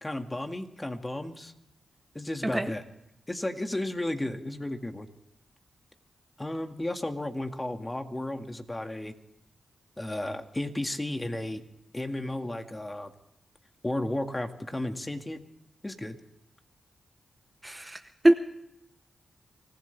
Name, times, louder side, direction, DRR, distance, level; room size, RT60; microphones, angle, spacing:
voice 1, 0.0-1.5 2.1-2.8 3.3-5.1 6.4-9.1 10.0-11.6 11.9-13.1 13.8-15.4 15.8-16.2, left 1 dB, 20° left, 6 dB, 2.0 m, -33 dB
voice 2, 2.4-2.7 17.6-18.3, right 1 dB, 15° right, 9 dB, 0.9 m, -24 dB
25.0 x 15.5 x 3.4 m, 0.82 s
cardioid pair, 55°, 0 cm